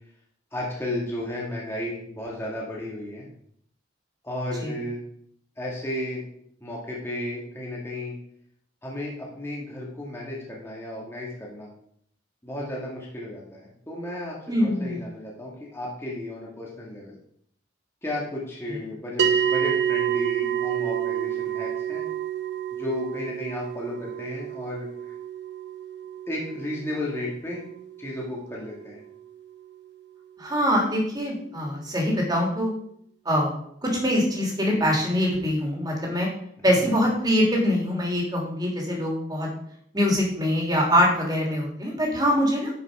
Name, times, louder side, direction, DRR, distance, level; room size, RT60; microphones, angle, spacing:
voice 1, 0.5-3.3 4.2-5.0 5.6-6.2 6.6-8.2 8.8-11.7 12.4-17.2 18.0-22.0 22.7-25.1 26.3-27.6 28.0-29.0 36.6-36.8, left 1 dB, 15° left, -4 dB, 1.9 m, -33 dB
voice 2, 14.5-15.0 18.7-18.8 30.4-32.7 33.2-33.5 33.8-36.3 36.6-39.5 39.9-42.7, equal, 20° right, -2 dB, 2.9 m, -23 dB
sound 1, 19.2-29.7, right 9 dB, 60° right, 1.1 m, -29 dB
11.0 x 5.8 x 4.8 m, 0.67 s
head